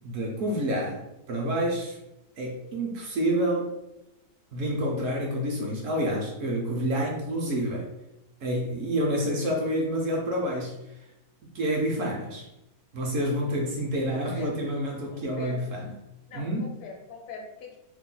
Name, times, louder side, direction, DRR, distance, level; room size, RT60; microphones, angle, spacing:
voice 1, 0.0-2.0 2.4-3.7 4.5-7.9 8.4-10.7 11.5-12.5 12.9-15.9 16.3-16.7, equal, 65° right, -1 dB, 0.9 m, -28 dB
voice 2, 15.1-15.7 16.3-17.8, left 3 dB, 75° left, 2 dB, 1.0 m, -41 dB
2.9 x 2.1 x 3.7 m, 0.90 s
omnidirectional pair, 1.6 m